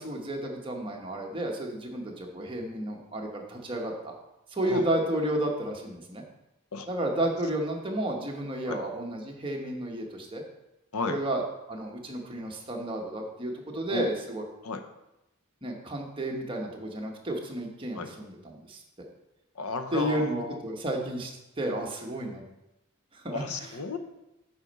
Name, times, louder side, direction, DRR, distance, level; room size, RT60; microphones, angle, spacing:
voice 1, 0.0-4.1 4.5-6.2 6.9-10.4 11.1-11.4 11.7-14.4 15.6-18.8 19.9-22.4 23.1-23.7, right 1 dB, 25° right, 0 dB, 1.1 m, -32 dB
voice 2, 19.5-20.6 23.3-24.0, left 3 dB, 85° left, 8 dB, 0.7 m, -33 dB
8.3 x 4.4 x 5.3 m, 0.92 s
head